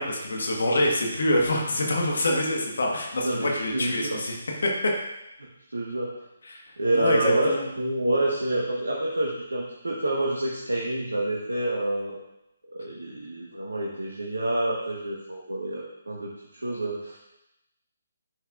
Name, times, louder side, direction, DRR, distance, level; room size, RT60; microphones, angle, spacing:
voice 1, 0.0-4.3 4.6-4.9 6.5-6.6 6.9-7.6, left 1 dB, 60° left, 0 dB, 1.4 m, -25 dB
voice 2, 3.2-4.2 5.7-6.2 6.8-12.1 12.7-17.2, right 1 dB, 80° right, -3 dB, 1.2 m, -28 dB
10.5 x 5.9 x 2.5 m, 0.89 s
figure-of-eight pair, 140°, 0 cm